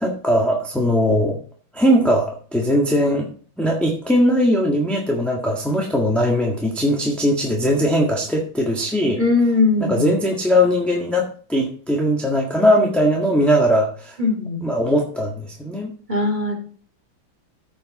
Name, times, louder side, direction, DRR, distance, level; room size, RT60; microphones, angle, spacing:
voice 1, 0.0-1.4 1.7-3.3 3.6-9.2 9.8-14.2 14.6-15.9, equal, ahead, -1 dB, 1.4 m, -19 dB
voice 2, 9.2-10.1 14.2-14.6 16.1-16.6, left 3 dB, 20° right, 0 dB, 3.0 m, -19 dB
14.5 x 5.7 x 4.2 m, 0.43 s
omnidirectional pair, 2.4 m